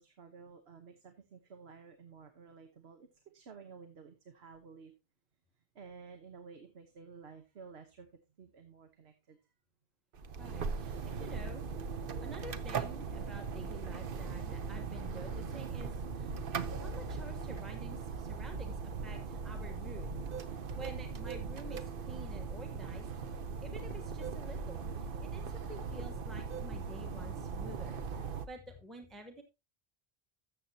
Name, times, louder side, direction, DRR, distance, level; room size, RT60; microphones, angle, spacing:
voice 1, 0.0-4.9 5.6-8.1 8.4-9.4 11.3-11.4, right 5 dB, 85° right, 7 dB, 1.3 m, -53 dB
sound 1, 10.1-28.5, right 5 dB, 60° right, 0.9 m, -39 dB
voice 2, 10.4-11.7 12.2-16.4 16.8-20.1 20.5-23.1 23.6-29.4, equal, ahead, 4 dB, 1.0 m, -50 dB
13.0 x 7.6 x 2.7 m, 0.26 s
omnidirectional pair, 1.1 m